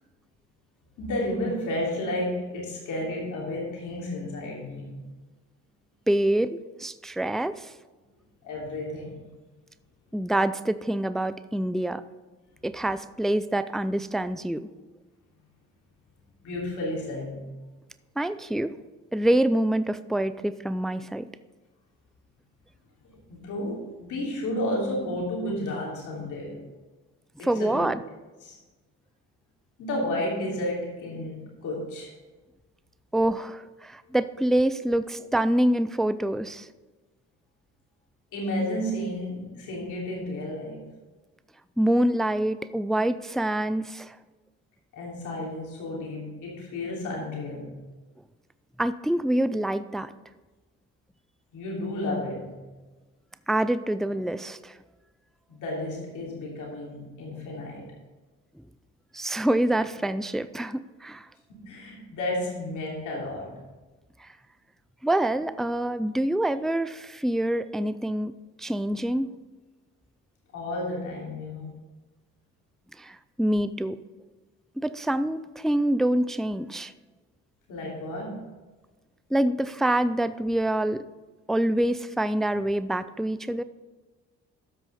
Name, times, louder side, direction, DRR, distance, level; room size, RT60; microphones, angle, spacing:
voice 1, 1.0-4.9 8.4-9.3 16.4-17.5 23.3-26.6 27.4-27.8 28.4-28.6 29.8-32.1 38.3-40.9 44.9-47.8 51.5-52.6 55.5-57.9 61.5-63.5 70.5-71.7 77.7-78.4, left 1 dB, 80° left, -3 dB, 3.4 m, -32 dB
voice 2, 6.1-7.7 10.1-12.0 12.6-14.7 18.2-18.7 19.1-21.3 27.4-28.0 33.1-36.7 41.8-44.2 48.8-50.1 53.5-54.7 59.1-61.3 64.2-64.3 65.0-68.3 68.6-69.4 73.0-74.0 74.8-76.9 79.3-81.0 81.5-83.6, right 1 dB, ahead, 13 dB, 0.3 m, -26 dB
12.5 x 6.2 x 4.2 m, 1.2 s
cardioid pair, 90°, 30 cm